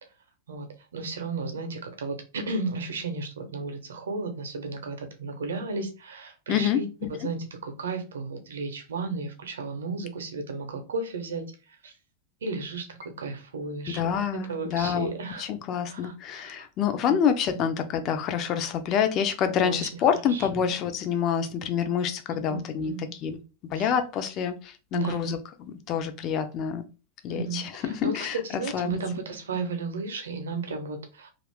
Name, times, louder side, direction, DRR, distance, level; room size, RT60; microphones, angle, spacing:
voice 1, 0.9-6.9 7.2-11.4 11.8-11.9 12.4-14.0 14.5-15.5 15.9-16.7 17.1-17.2 17.5-17.6 19.6-19.9 20.3-20.7 22.5-23.1 23.8-23.9 24.9-25.3 27.3-31.3, right 3 dB, 65° right, 0.7 m, -34 dB
voice 2, 6.5-7.1 13.9-15.1 15.4-22.9 23.2-23.4 23.7-26.8 27.2-29.0, left 8 dB, 35° left, 0.5 m, -27 dB
2.5 x 2.4 x 3.4 m
figure-of-eight pair, 90°, 0 cm